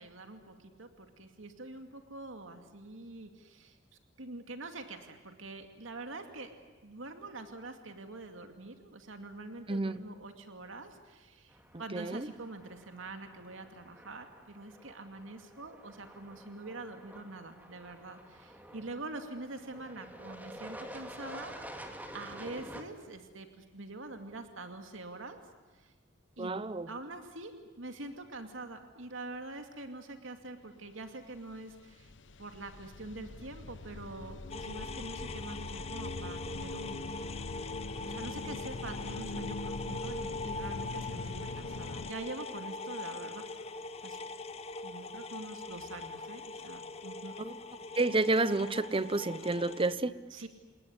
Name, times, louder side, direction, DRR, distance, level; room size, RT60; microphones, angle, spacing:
voice 1, 0.0-3.8 4.2-6.6 6.8-21.5 22.1-25.4 25.7-25.9 26.4-26.6 26.9-32.1 32.4-37.0 38.0-43.5 44.0-44.2 44.8-47.3 50.3-50.5, right 2 dB, 90° right, 6 dB, 2.4 m, -45 dB
voice 2, 9.7-10.0 11.9-12.3 26.4-26.9 47.4-47.5 48.0-50.1, right 2 dB, 30° right, 15 dB, 0.9 m, -30 dB
sound 1, 11.5-22.8, equal, 10° right, 2.4 m, -49 dB
sound 2, 31.1-31.2 31.4-42.1, left 2 dB, 65° left, 0.9 m, -42 dB
sound 3, 34.5-49.9, left 3 dB, 30° left, 0.9 m, -42 dB
28.0 x 19.5 x 9.7 m, 1.4 s
head